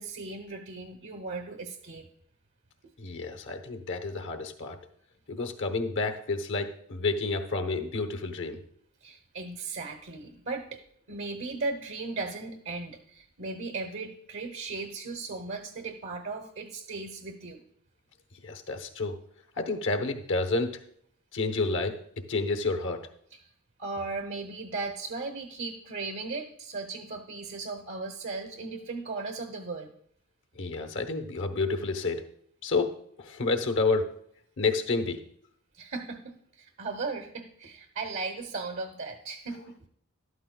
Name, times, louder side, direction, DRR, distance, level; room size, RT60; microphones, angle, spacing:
voice 1, 0.0-2.1 9.0-10.8 11.1-17.6 23.3-23.5 23.8-29.9 35.7-39.9, right 3 dB, 60° right, 4 dB, 0.9 m, -37 dB
voice 2, 3.0-4.8 5.3-8.6 18.4-19.2 19.6-20.8 21.3-22.0 22.3-23.0 30.6-32.2 32.6-34.1 34.6-35.2, left 3 dB, 55° left, 7 dB, 1.0 m, -29 dB
13.0 x 12.0 x 2.3 m, 0.67 s
head